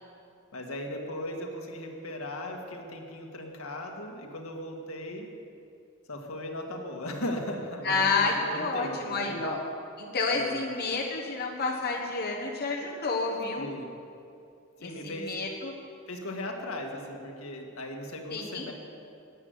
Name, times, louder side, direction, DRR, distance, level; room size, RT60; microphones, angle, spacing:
voice 1, 0.5-5.3 6.1-9.4 10.3-10.6 13.6-13.9 14.8-15.3 16.1-18.7, left 1 dB, 75° left, 2 dB, 1.8 m, -37 dB
voice 2, 7.8-9.6 10.0-13.7 14.8-15.7 18.3-18.7, left 3 dB, 50° left, -2 dB, 1.4 m, -29 dB
13.0 x 8.1 x 9.6 m, 2.6 s
head